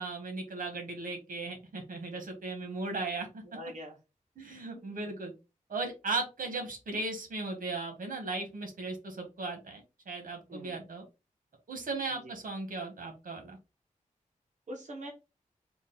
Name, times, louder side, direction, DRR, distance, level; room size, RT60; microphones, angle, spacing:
voice 1, 0.0-3.4 4.4-5.3 5.7-11.0 11.7-13.6, right 3 dB, 85° right, 4 dB, 1.3 m, -37 dB
voice 2, 3.5-4.0 4.7-5.1 10.5-10.8 12.1-12.3 14.7-15.1, equal, 60° right, 0 dB, 1.1 m, -44 dB
3.8 x 2.4 x 3.8 m, 0.27 s
wide cardioid pair, 85°, 14 cm